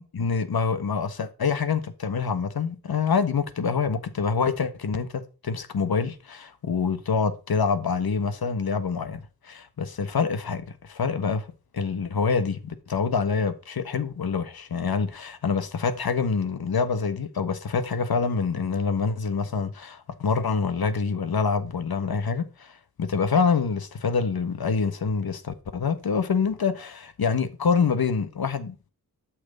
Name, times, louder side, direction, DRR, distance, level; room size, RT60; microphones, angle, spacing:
voice 1, 0.1-11.5 11.7-28.9, left 5 dB, 70° left, 1.5 m, -26 dB
12.0 x 6.5 x 5.5 m
wide cardioid pair, 85°, 38 cm